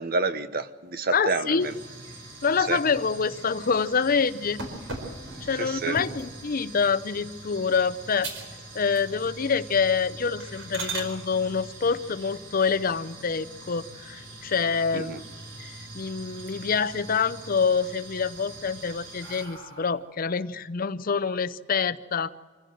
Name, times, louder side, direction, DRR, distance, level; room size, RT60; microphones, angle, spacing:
voice 1, 0.0-1.7 2.7-2.8 5.6-6.0 14.9-15.2, right 3 dB, 50° right, 1.0 m, -29 dB
voice 2, 1.1-1.7 2.4-4.6 5.4-8.3 8.7-15.2 15.6-22.3, left 5 dB, 45° left, 0.6 m, -26 dB
sound 1, 1.6-19.5, right 2 dB, 70° right, 4.3 m, -44 dB
sound 2, 4.6-6.4 6.9-7.3 7.7-7.8 8.2-8.6 8.9-9.4 9.7-9.9 10.4-11.1 13.1-13.8 14.2-14.3 14.7-14.8 15.1-15.9 16.3-16.9 17.3-17.9 18.5-20.2, right 3 dB, 85° right, 4.9 m, -39 dB
25.0 x 16.0 x 7.8 m
head